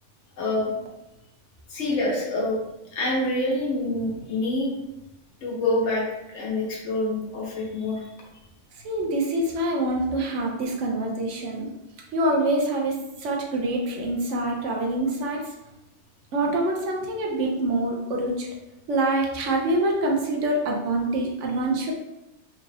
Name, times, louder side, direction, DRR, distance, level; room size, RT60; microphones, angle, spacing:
voice 1, 0.4-0.7 1.7-2.6 2.9-4.7 5.4-6.1 6.3-8.0, left 2 dB, 70° left, -3 dB, 1.1 m, -26 dB
voice 2, 8.7-11.7 12.1-15.5 16.3-18.5 18.9-21.9, right 1 dB, 75° right, 0 dB, 1.0 m, -25 dB
3.5 x 2.4 x 3.2 m, 0.94 s
omnidirectional pair, 1.3 m